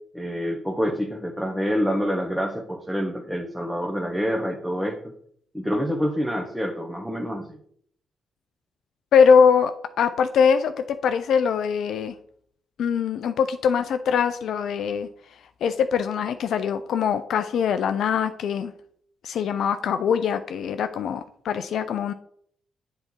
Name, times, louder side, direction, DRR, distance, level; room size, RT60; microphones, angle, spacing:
voice 1, 0.1-5.1 5.5-7.6, equal, 5° right, 1 dB, 1.2 m, -27 dB
voice 2, 9.1-9.7 10.0-12.1 12.8-15.1 15.6-18.7 19.2-22.1, left 6 dB, 70° left, 9 dB, 0.4 m, -22 dB
7.7 x 4.0 x 4.3 m, 0.64 s
hypercardioid pair, 45°, 0 cm